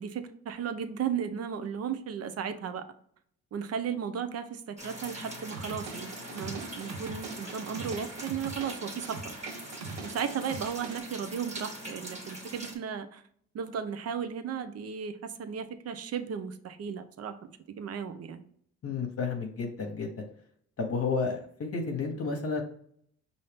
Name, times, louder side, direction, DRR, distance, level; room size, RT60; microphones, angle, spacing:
voice 1, 0.0-2.8 3.5-9.4 10.0-13.2 13.5-17.4 17.8-18.4, right 7 dB, 55° right, 10 dB, 0.7 m, -35 dB
sound 1, 4.8-12.7, right 1 dB, 20° right, 1.6 m, -42 dB
sound 2, 5.5-11.0, right 4 dB, 80° right, 0.8 m, -43 dB
voice 2, 18.8-20.1 20.8-21.4 21.7-22.6, left 4 dB, 50° left, 2 dB, 1.1 m, -31 dB
5.5 x 2.7 x 3.4 m, 0.62 s
cardioid pair, 90°, 30 cm